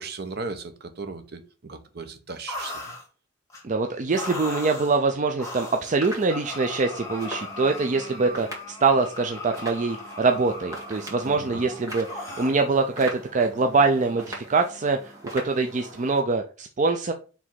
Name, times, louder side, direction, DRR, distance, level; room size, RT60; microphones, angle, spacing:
voice 1, 0.0-2.8 11.3-11.7, right 3 dB, 60° right, 0.9 m, -37 dB
sound 1, 2.5-3.0 3.5-3.6 4.1-5.0 5.4-5.9 6.3-12.6, left 2 dB, 15° left, 1.5 m, -38 dB
voice 2, 3.6-17.1, right 4 dB, 40° right, 0.5 m, -24 dB
sound 2, 5.5-16.2, right 1 dB, 20° right, 2.0 m, -42 dB
5.0 x 3.4 x 5.6 m
head